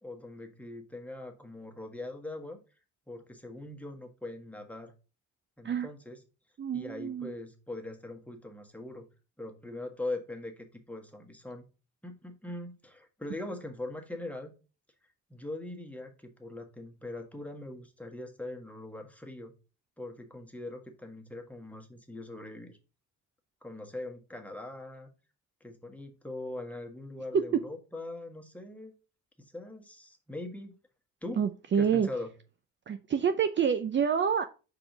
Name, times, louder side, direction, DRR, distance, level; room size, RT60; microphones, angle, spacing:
voice 1, 0.0-2.6 3.1-4.9 5.6-6.2 6.7-9.1 9.4-11.6 12.0-14.5 15.3-19.5 20.0-22.8 23.6-25.1 25.6-28.9 29.4-30.7 31.2-31.4 31.7-32.3, left 2 dB, 5° left, 1.5 m, -41 dB
voice 2, 6.6-7.3 27.3-27.4 31.4-32.1 32.9-34.4, right 7 dB, 40° right, 0.6 m, -27 dB
4.9 x 3.9 x 5.8 m
cardioid pair, 90°, 30 cm